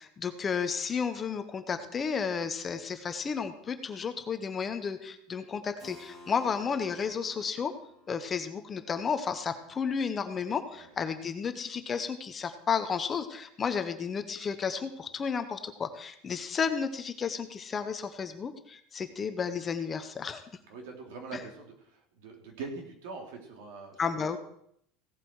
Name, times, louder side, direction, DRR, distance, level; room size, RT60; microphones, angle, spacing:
voice 1, 0.0-7.7 8.1-20.4 21.3-21.4 24.0-24.4, left 6 dB, 15° left, 9 dB, 0.8 m, -32 dB
Keyboard (musical), 5.8-11.3, left 1 dB, 20° right, 3.4 m, -55 dB
voice 2, 20.7-24.4, right 4 dB, 85° right, 2 dB, 3.2 m, -43 dB
16.5 x 8.2 x 4.7 m, 0.70 s
cardioid pair, 175°, 0 cm